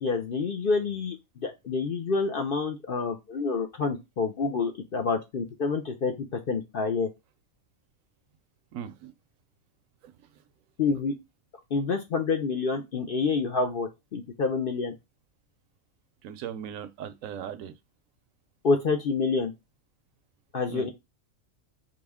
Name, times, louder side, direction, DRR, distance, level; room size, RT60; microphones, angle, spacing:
voice 1, 0.0-7.1 10.8-11.1 11.7-14.9 18.6-19.5 20.5-20.9, left 4 dB, 50° left, 0.7 m, -28 dB
voice 2, 8.7-9.1 16.2-17.7 20.7-20.9, right 9 dB, 75° right, 1.0 m, -38 dB
4.8 x 2.7 x 3.4 m
omnidirectional pair, 1.4 m